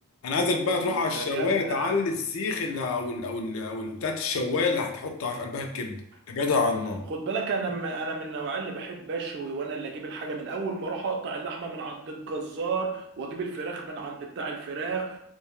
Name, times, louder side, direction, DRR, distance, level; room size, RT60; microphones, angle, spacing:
voice 1, 0.2-6.0 6.3-7.0, left 3 dB, 70° left, 4 dB, 0.4 m, -27 dB
voice 2, 0.8-2.0 7.1-15.2, right 4 dB, 55° right, 1 dB, 0.4 m, -32 dB
2.1 x 2.0 x 2.9 m, 0.73 s
head